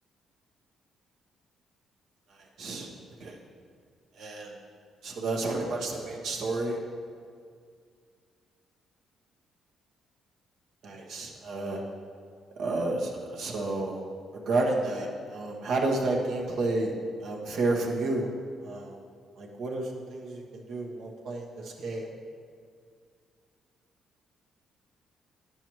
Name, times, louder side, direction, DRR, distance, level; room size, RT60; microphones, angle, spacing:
voice 1, 2.3-2.9 3.2-3.4 4.1-4.5 5.0-6.8 10.8-11.8 12.6-14.0 14.5-16.9 17.2-18.3 18.6-18.9 19.4-22.1, right 2 dB, 75° right, 0 dB, 1.2 m, -31 dB
10.5 x 7.0 x 3.1 m, 2.2 s
cardioid pair, 90°, 0 cm